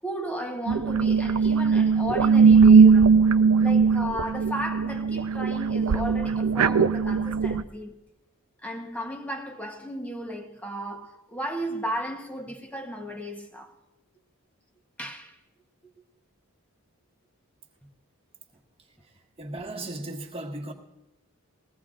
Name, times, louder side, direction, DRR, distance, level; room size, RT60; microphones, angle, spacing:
voice 1, 0.0-3.2 3.6-8.0 8.6-13.7 15.0-15.4, equal, 5° left, 1.0 m, -35 dB
sound 1, 0.7-7.6, right 5 dB, 80° right, 0.5 m, -19 dB
voice 2, 19.4-20.7, right 2 dB, 25° right, 1.4 m, -36 dB
20.5 x 16.5 x 2.5 m
head